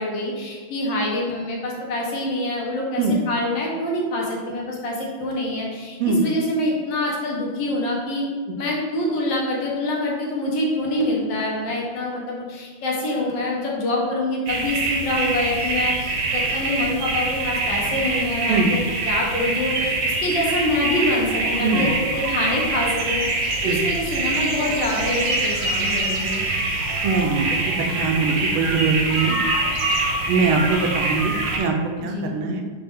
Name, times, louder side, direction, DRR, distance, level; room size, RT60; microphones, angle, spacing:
voice 1, 0.0-8.2 8.6-15.9 16.3-23.3 23.6-26.4 32.0-32.3, left 1 dB, 70° left, -2 dB, 1.4 m, -25 dB
sound 1, 14.5-31.6, right 2 dB, 65° right, 1.1 m, -24 dB
voice 2, 21.6-21.9 23.6-23.8 27.0-29.3 30.3-31.7 32.0-32.6, right 4 dB, 85° right, 3 dB, 1.5 m, -22 dB
5.3 x 2.8 x 3.5 m, 1.5 s
omnidirectional pair, 2.3 m